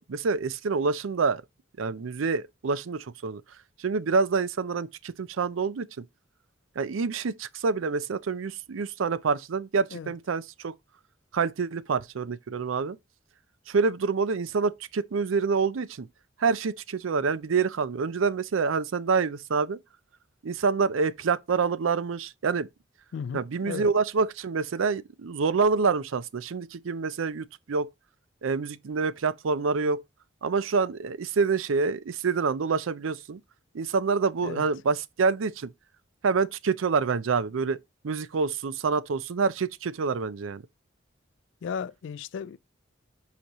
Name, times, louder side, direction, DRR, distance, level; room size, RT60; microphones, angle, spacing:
voice 1, 0.0-1.4 1.8-3.4 3.8-6.0 6.8-10.7 11.3-13.0 13.7-16.1 16.4-19.8 20.4-22.7 23.3-27.9 28.4-30.0 30.4-33.4 33.7-35.7 36.2-37.8 38.0-40.6, right 5 dB, 85° right, 0.5 m, -27 dB
voice 2, 23.1-23.9 34.4-34.6 41.6-42.6, left 6 dB, 65° left, 0.3 m, -35 dB
7.9 x 5.1 x 3.0 m
head